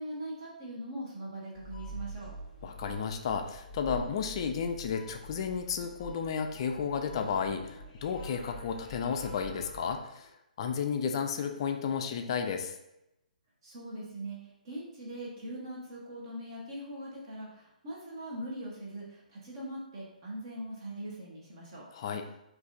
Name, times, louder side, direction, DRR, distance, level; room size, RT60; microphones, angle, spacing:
voice 1, 0.0-2.3 13.6-21.9, right 1 dB, 35° right, -4 dB, 1.1 m, -41 dB
sound 1, 1.6-10.0, right 2 dB, 15° left, 1.0 m, -46 dB
voice 2, 2.6-10.3 10.6-12.7 21.9-22.2, left 6 dB, 35° left, 4 dB, 0.4 m, -33 dB
7.6 x 2.6 x 2.5 m, 0.87 s
figure-of-eight pair, 130°, 5 cm